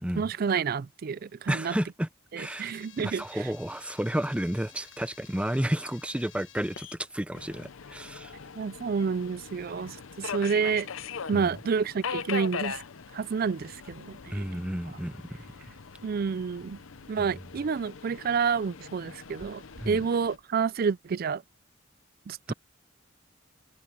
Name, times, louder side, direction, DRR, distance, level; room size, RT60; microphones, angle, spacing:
voice 1, 0.2-1.8 2.3-3.4 8.6-10.9 11.3-12.8 13.1-14.5 16.0-16.8 17.1-21.4 22.3-22.5, right 6 dB, 50° right, 0.4 m, -29 dB
voice 2, 1.5-2.1 2.4-2.7 3.0-8.3 11.3-11.4 14.3-15.4 17.2-17.3 19.8-20.0 22.5-22.6, right 1 dB, 5° right, 0.6 m, -31 dB
sound 1, 2.4-10.7, left 10 dB, 65° left, 1.4 m, -54 dB
Subway metro underground, 7.3-20.4, left 6 dB, 90° left, 0.7 m, -41 dB
sound 2, 14.9-20.5, equal, 85° right, 7.2 m, -57 dB
head